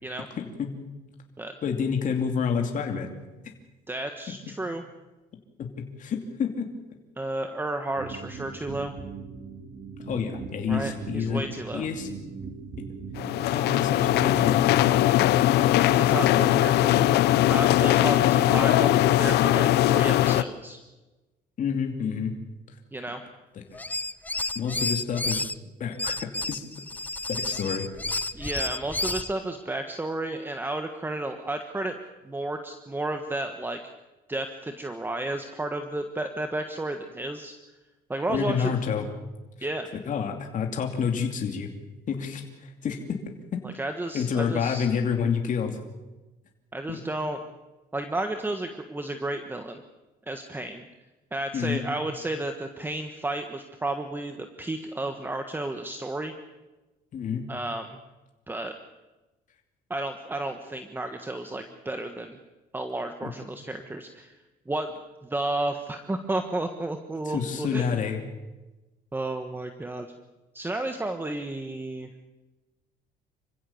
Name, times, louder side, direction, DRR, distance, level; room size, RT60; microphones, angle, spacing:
voice 1, 0.4-0.7 1.6-3.1 5.6-5.7 6.0-6.7 10.1-12.1 13.4-14.8 21.6-22.3 24.5-25.4 25.8-26.6 27.3-27.9 38.3-39.1 40.1-41.7 42.1-43.2 43.5-43.6 44.1-45.8 46.9-47.0 51.5-51.8 57.1-57.5 63.2-63.3 67.3-68.2, left 6 dB, 50° left, 3 dB, 2.6 m, -28 dB
voice 2, 3.9-4.8 7.2-8.9 10.7-11.9 15.5-20.8 22.9-23.2 28.3-32.0 32.2-33.8 34.3-37.5 38.1-38.7 39.6-39.9 43.6-44.9 46.7-47.4 47.9-49.8 50.3-50.8 51.3-56.3 57.5-57.9 58.5-58.7 59.9-62.4 62.7-64.4 64.7-64.9 65.2-68.0 69.1-70.1 70.5-72.1, right 2 dB, 10° right, 6 dB, 1.4 m, -32 dB
sound 1, 8.0-15.9, right 5 dB, 45° right, 3.9 m, -40 dB
sound 2, 13.2-20.4, left 14 dB, 80° left, 0.8 m, -20 dB
sound 3, 23.7-25.5 26.0-29.3, left 2 dB, 10° left, 0.6 m, -31 dB
26.5 x 16.0 x 7.2 m, 1.1 s
cardioid pair, 110°, 17 cm